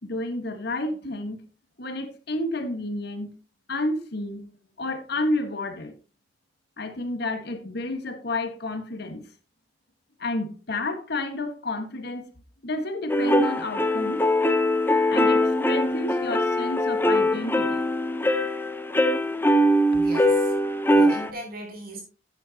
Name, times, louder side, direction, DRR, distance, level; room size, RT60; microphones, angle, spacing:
voice 1, 0.0-1.4 1.8-3.3 3.7-4.4 4.8-5.9 6.8-9.2 10.2-12.3 12.6-14.2 15.1-17.8, left 2 dB, 60° left, 1.5 m, -30 dB
sound 1, 13.1-21.3, left 1 dB, 10° left, 0.9 m, -22 dB
voice 2, 19.9-20.5 20.9-22.0, right 1 dB, 55° right, 5.4 m, -38 dB
12.0 x 9.5 x 2.9 m
head